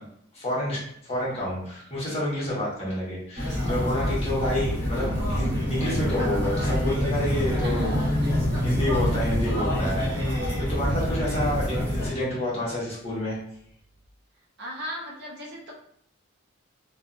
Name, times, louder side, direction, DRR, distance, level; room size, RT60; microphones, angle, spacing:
voice 1, 0.3-7.9 8.6-10.0 10.7-13.4, left 1 dB, 30° left, -7 dB, 1.0 m, -29 dB
sound 1, 3.4-12.1, equal, 20° right, 1.2 m, -26 dB
voice 2, 7.6-8.4 14.6-15.7, equal, 50° right, -3 dB, 0.6 m, -37 dB
2.6 x 2.4 x 2.4 m, 0.69 s
head